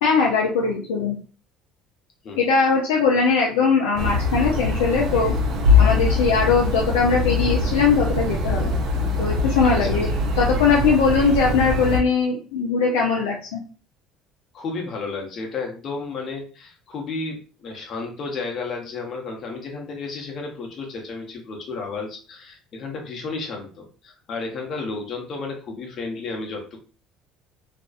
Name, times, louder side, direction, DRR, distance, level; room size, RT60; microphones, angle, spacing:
voice 1, 0.0-1.2 2.4-5.3 5.8-8.7 9.2-10.1 10.4-13.6, left 5 dB, 80° left, -1 dB, 0.4 m, -20 dB
sound 1, 3.9-12.0, left 3 dB, 60° right, 0.6 m, -22 dB
voice 2, 14.5-26.8, left 3 dB, 50° left, 1 dB, 0.8 m, -32 dB
2.5 x 2.3 x 2.3 m, 0.37 s
hypercardioid pair, 70°, 0 cm